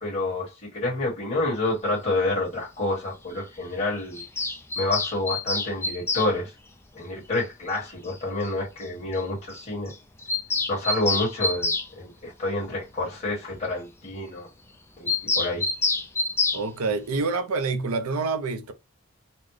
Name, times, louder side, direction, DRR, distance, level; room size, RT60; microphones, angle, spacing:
voice 1, 0.0-4.2 4.8-6.5 6.9-9.9 10.7-14.5 15.0-15.6, left 2 dB, 30° left, 1.5 m, -28 dB
Bird vocalization bird call bird song, 4.1-6.3 7.7-7.8 8.1-8.2 8.4-8.5 8.8-8.9 9.1-9.2 9.5-9.6 9.9-11.9 15.1-16.6, left 3 dB, 10° left, 0.4 m, -27 dB
voice 2, 16.5-18.7, right 4 dB, 90° right, 0.6 m, -27 dB
4.1 x 2.1 x 3.1 m
head